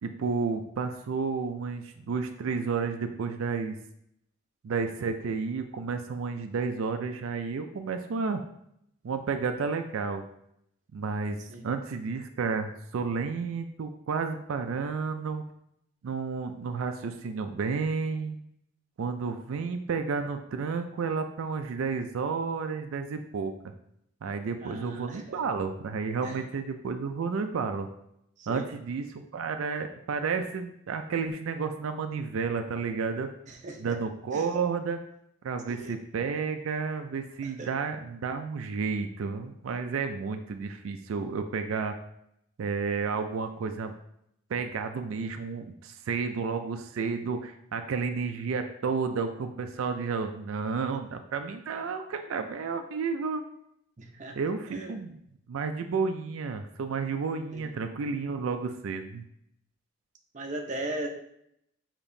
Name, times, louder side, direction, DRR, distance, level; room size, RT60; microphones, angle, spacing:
voice 1, 0.0-3.8 4.6-8.4 9.0-10.2 10.9-11.4 11.6-15.4 16.0-18.4 19.0-23.7 24.2-27.9 28.5-33.3 33.8-35.0 35.4-42.0 42.6-43.9 44.5-53.4 54.4-55.2 55.5-59.2, right 5 dB, 85° right, 7 dB, 0.4 m, -31 dB
voice 2, 24.6-25.4 26.2-26.5 28.4-28.7 33.5-34.0 34.3-34.5 35.7-36.0 37.4-37.7 54.0-54.4 54.7-54.9 57.5-57.7 60.3-61.1, right 1 dB, 35° right, 1 dB, 0.6 m, -38 dB
6.8 x 2.9 x 2.6 m, 0.75 s
head